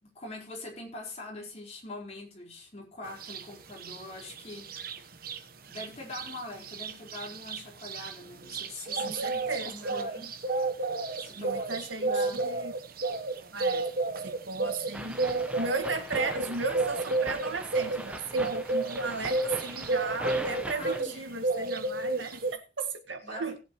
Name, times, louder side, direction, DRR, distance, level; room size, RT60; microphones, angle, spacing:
voice 1, 0.0-4.8 5.7-10.3 11.2-12.5 20.5-21.3 23.2-23.6, left 2 dB, 35° left, 4.5 m, -43 dB
sound 1, 3.2-3.4 3.8-5.4 5.7-5.9 6.1-21.2 21.4-22.5, right 3 dB, 55° right, 1.1 m, -31 dB
voice 2, 8.9-10.0 11.3-12.7 13.5-13.9 14.2-23.6, right 4 dB, 85° right, 1.9 m, -35 dB
sound 2, 14.9-21.0, right 1 dB, 5° right, 1.2 m, -40 dB
19.0 x 7.9 x 3.1 m
head